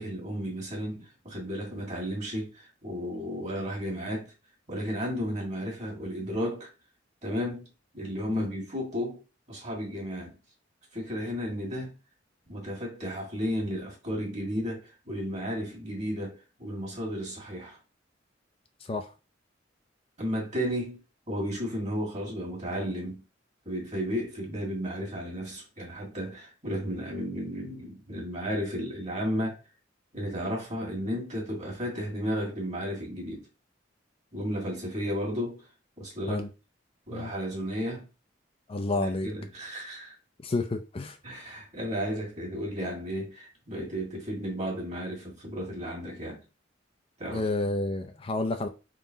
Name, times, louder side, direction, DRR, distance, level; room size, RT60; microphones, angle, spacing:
voice 1, 0.0-4.3 4.7-6.7 7.2-7.6 7.9-9.2 9.5-10.4 10.9-11.9 12.5-17.8 20.2-21.0 21.3-23.2 23.6-29.6 30.1-33.5 34.3-35.6 36.0-36.5 37.1-38.1 38.9-40.1 41.2-46.4 47.2-47.5, equal, 40° right, 1.8 m, -33 dB
voice 2, 38.7-39.3 40.4-41.2 47.3-48.7, left 2 dB, 30° left, 0.4 m, -30 dB
4.0 x 3.8 x 2.7 m
head